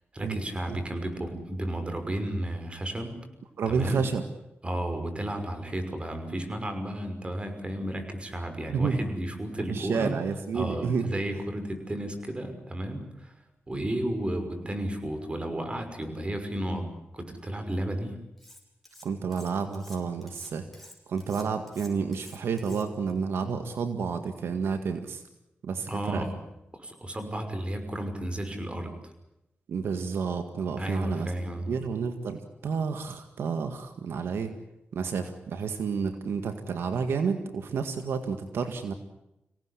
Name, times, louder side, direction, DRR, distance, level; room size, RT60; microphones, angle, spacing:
voice 1, 0.1-3.2 3.7-4.1 4.6-10.2 10.5-13.3 13.7-18.2 25.9-26.4 26.7-28.9 30.8-31.8, right 1 dB, 30° right, 7 dB, 5.9 m, -33 dB
voice 2, 3.6-4.2 8.7-9.0 9.7-11.1 19.0-25.2 25.6-26.2 29.7-31.3 31.7-34.6 34.9-38.9, right 5 dB, 85° right, 8 dB, 1.9 m, -30 dB
Cutlery silverware, 18.4-19.1 19.3-23.1, left 1 dB, 5° left, 6.7 m, -50 dB
26.0 x 17.5 x 10.0 m, 0.89 s
cardioid pair, 65°, 4 cm